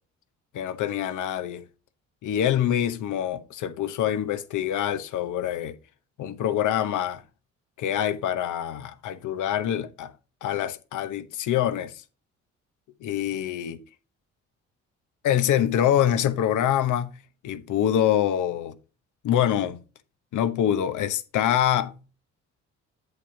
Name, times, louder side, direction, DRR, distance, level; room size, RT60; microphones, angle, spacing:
voice 1, 0.5-1.6 2.2-5.8 6.2-7.2 7.8-10.1 10.4-12.0 13.0-13.8 15.2-17.2 17.4-18.8 19.2-19.8 20.3-22.0, left 10 dB, 80° left, 1.0 m, -25 dB
8.1 x 7.2 x 2.8 m
cardioid pair, 90°, 30 cm